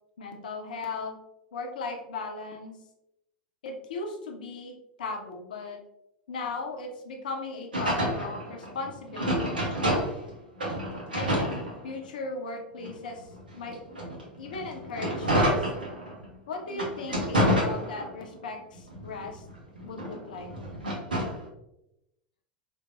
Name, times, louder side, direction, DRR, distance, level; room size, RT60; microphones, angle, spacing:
voice 1, 0.2-1.2 1.5-2.8 3.6-5.8 6.3-9.6 11.1-11.5 11.8-13.3 13.5-13.8 14.4-15.7 16.5-19.4 19.8-20.5, left 3 dB, 65° left, 2 dB, 0.7 m, -37 dB
sound 1, 7.7-10.3 10.6-12.2 12.8-16.3 16.7-18.3 18.8-21.4, equal, 80° right, 0.9 m, -29 dB
5.0 x 2.6 x 2.3 m, 0.88 s
figure-of-eight pair, 80°, 5 cm